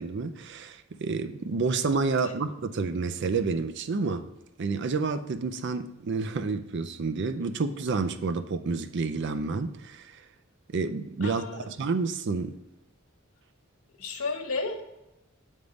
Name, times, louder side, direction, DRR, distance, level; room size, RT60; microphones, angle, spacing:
voice 1, 0.0-4.3 4.6-10.2 10.7-12.6, right 4 dB, 55° right, 10 dB, 0.5 m, -29 dB
voice 2, 11.2-11.7 14.0-14.8, left 3 dB, 90° left, 2 dB, 1.1 m, -33 dB
8.0 x 3.6 x 5.1 m, 0.92 s
head